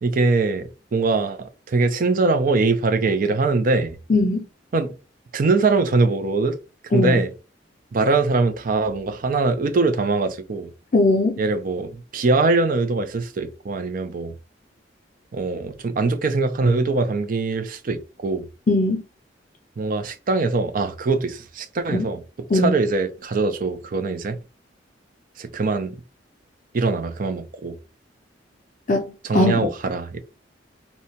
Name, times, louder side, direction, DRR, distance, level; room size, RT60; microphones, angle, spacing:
voice 1, 0.0-4.0 4.7-5.0 5.3-6.6 6.9-7.3 7.9-10.7 11.4-14.4 15.3-18.5 19.8-24.4 25.4-26.0 26.7-27.8 29.2-30.2, right 3 dB, 50° right, 0.4 m, -22 dB
voice 2, 4.1-4.4 6.9-7.2 10.9-11.4 18.7-19.0 21.9-22.0 22.5-22.7 28.9-29.1 29.3-29.5, left 2 dB, 45° left, 0.4 m, -19 dB
2.7 x 2.1 x 2.8 m
head